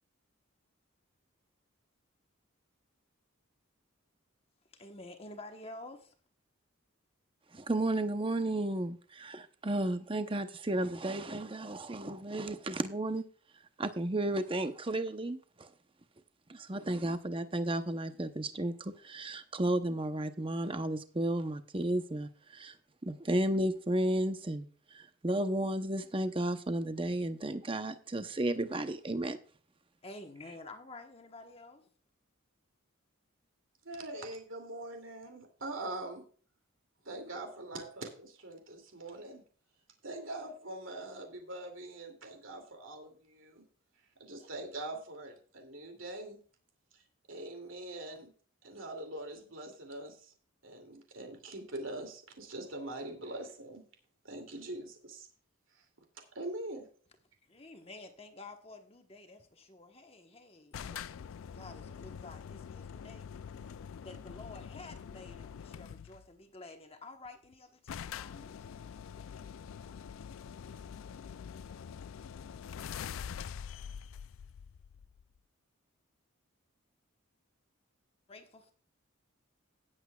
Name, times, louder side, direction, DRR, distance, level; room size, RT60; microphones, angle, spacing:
voice 1, 4.7-6.1 30.0-31.9 57.5-61.0 61.5-63.3 64.0-68.5 78.3-78.7, left 2 dB, 25° left, 1.1 m, -50 dB
voice 2, 7.5-13.2 13.8-15.7 16.5-22.7 23.0-24.7 24.9-29.4, right 1 dB, 25° right, 0.8 m, -33 dB
voice 3, 33.8-36.3 37.0-39.4 40.0-43.6 44.2-46.4 46.9-47.0 47.3-48.3 48.6-50.3 50.6-53.9 54.2-55.3 55.7-55.8 56.3-56.9, right 2 dB, 65° right, 2.6 m, -43 dB
sound 1, 60.7-66.3 67.3-67.4 67.5-67.6 67.9-75.4, left 7 dB, 70° left, 0.3 m, -45 dB
17.5 x 8.2 x 2.3 m
head